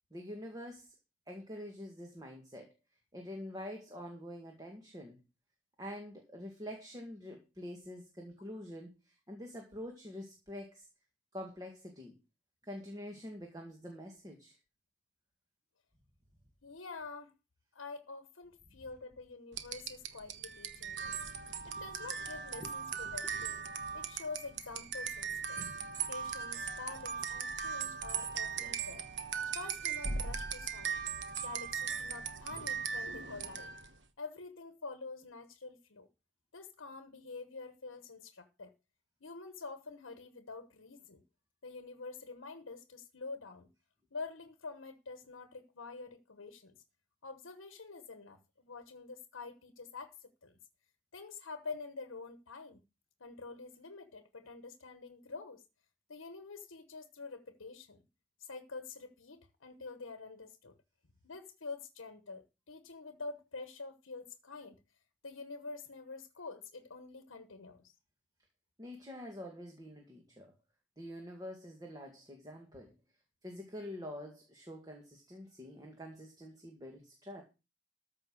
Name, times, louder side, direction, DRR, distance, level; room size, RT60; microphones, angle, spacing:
voice 1, 0.1-0.9 1.3-2.7 3.1-5.2 5.8-10.8 11.3-12.1 12.6-14.6 22.6-22.7 23.1-23.4 68.8-70.5 71.0-72.9 73.4-77.4, left 1 dB, 20° right, 2.0 m, -46 dB
voice 2, 16.6-17.3 17.7-21.2 21.6-23.6 23.9-25.6 26.1-29.1 29.4-31.0 31.4-33.7 34.2-36.1 36.5-38.7 39.2-41.2 41.6-43.7 44.1-46.8 47.2-50.6 51.1-52.8 53.2-55.6 56.1-58.0 58.4-60.7 61.2-64.8 65.2-67.9, left 4 dB, 90° left, 1.1 m, -47 dB
sound 1, 19.5-34.0, right 6 dB, 60° right, 1.2 m, -39 dB
14.0 x 5.6 x 6.4 m
head